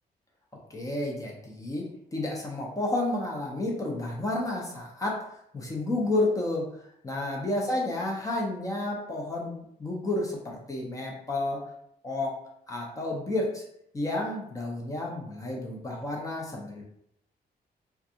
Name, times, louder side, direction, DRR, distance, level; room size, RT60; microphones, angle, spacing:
voice 1, 0.7-5.2 5.5-6.7 7.0-11.7 12.0-12.4 12.7-13.6 13.9-16.8, left 2 dB, 20° left, -2 dB, 0.5 m, -31 dB
2.4 x 2.3 x 2.7 m, 0.73 s
wide cardioid pair, 150°, 17 cm